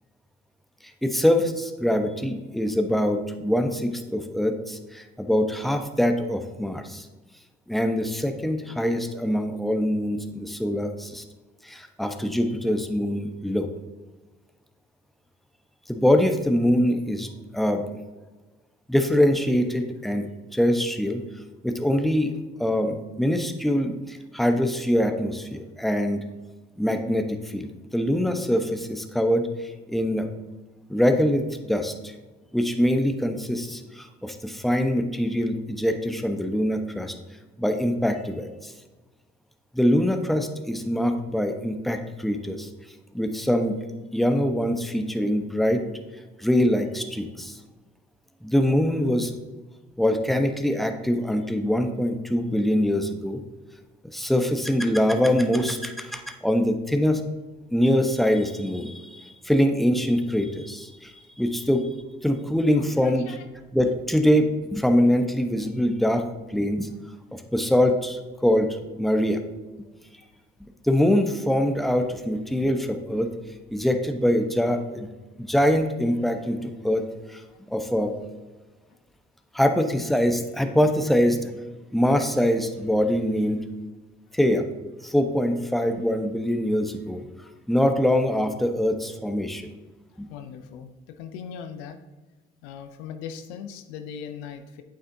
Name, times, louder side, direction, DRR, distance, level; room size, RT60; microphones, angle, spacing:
voice 1, 1.0-7.1 7.7-11.2 11.6-13.7 15.9-17.3 17.5-17.8 18.9-20.3 20.5-21.2 21.6-22.3 22.6-26.2 26.8-30.3 30.9-32.1 32.5-37.2 37.6-38.7 39.7-42.7 43.1-43.8 44.1-45.8 46.4-47.6 48.4-49.4 50.0-53.4 54.1-57.2 57.7-61.1 61.4-61.9 62.2-63.3 63.7-66.2 66.5-67.0 67.3-69.4 70.8-73.3 73.7-75.1 75.4-77.4 77.7-78.1 79.5-81.5 81.9-83.7 84.3-84.6 85.0-87.3 87.7-89.6 90.2-90.3, equal, ahead, 6 dB, 1.0 m, -23 dB
voice 2, 62.8-63.4 87.4-87.5 90.3-92.0 92.6-94.8, left 7 dB, 80° left, 7 dB, 0.6 m, -39 dB
8.6 x 7.6 x 2.7 m, 1.2 s
hypercardioid pair, 40°, 31 cm